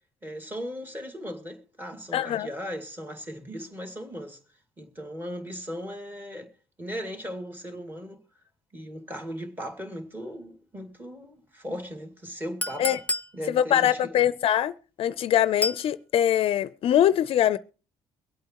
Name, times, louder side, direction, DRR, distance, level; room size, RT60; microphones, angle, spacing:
voice 1, 0.2-4.4 4.8-6.5 6.8-8.2 8.7-13.0 13.3-14.3, equal, 15° right, 2.3 m, -37 dB
voice 2, 2.1-2.5 12.8-13.0 13.5-14.7 15.0-17.6, left 11 dB, 55° left, 0.5 m, -23 dB
Chink clink, 12.6-13.3 15.6-15.9, left 1 dB, 15° left, 0.6 m, -29 dB
23.5 x 8.5 x 2.9 m
cardioid pair, 130°, 12 cm